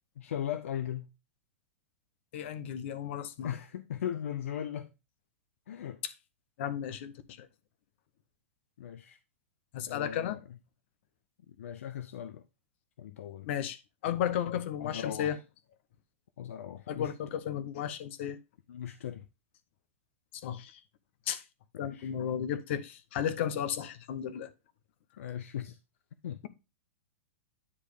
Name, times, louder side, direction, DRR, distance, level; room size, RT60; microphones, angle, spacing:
voice 1, 0.2-1.1 3.4-4.9 5.7-6.0 8.8-9.2 9.9-10.4 11.5-12.4 13.0-13.5 14.8-15.4 16.4-17.1 18.7-19.3 21.8-22.1 25.2-25.8 26.2-26.5, left 9 dB, 75° left, 0.6 m, -38 dB
voice 2, 2.3-3.5 6.6-7.5 9.7-10.4 13.5-13.8 14.0-15.4 16.9-18.4 20.4-20.8 21.3-21.4 21.8-24.5, left 9 dB, 60° left, 1.0 m, -34 dB
9.9 x 3.3 x 4.9 m
hypercardioid pair, 125°, 7 cm